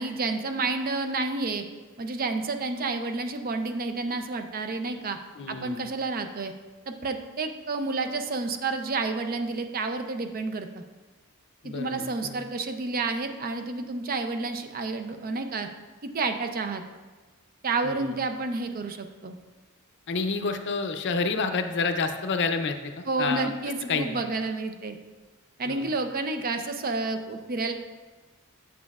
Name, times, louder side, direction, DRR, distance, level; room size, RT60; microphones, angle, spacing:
voice 1, 0.0-1.6 2.0-5.2 5.5-6.5 6.9-10.8 11.6-15.7 16.1-16.8 17.6-19.4 23.1-25.0 25.6-27.7, right 3 dB, 45° right, 7 dB, 0.5 m, -30 dB
voice 2, 5.4-5.9 11.6-12.4 17.8-18.2 20.1-23.5 23.9-24.2 25.7-25.9, left 4 dB, 55° left, 8 dB, 0.5 m, -29 dB
8.2 x 7.4 x 2.4 m, 1.3 s
head